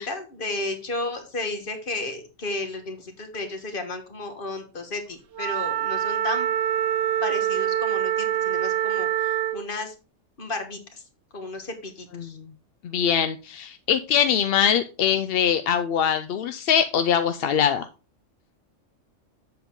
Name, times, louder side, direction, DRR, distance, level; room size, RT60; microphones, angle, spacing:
voice 1, 0.0-6.5 7.2-9.9 10.4-11.0 11.3-12.4, left 2 dB, 45° left, 6 dB, 1.5 m, -33 dB
Wind instrument woodwind instrument, 5.3-9.6, right 11 dB, 65° right, 1.0 m, -25 dB
voice 2, 12.1-12.4 12.8-17.9, left 8 dB, 60° left, 10 dB, 0.7 m, -23 dB
7.9 x 6.8 x 3.7 m, 0.33 s
omnidirectional pair, 1.3 m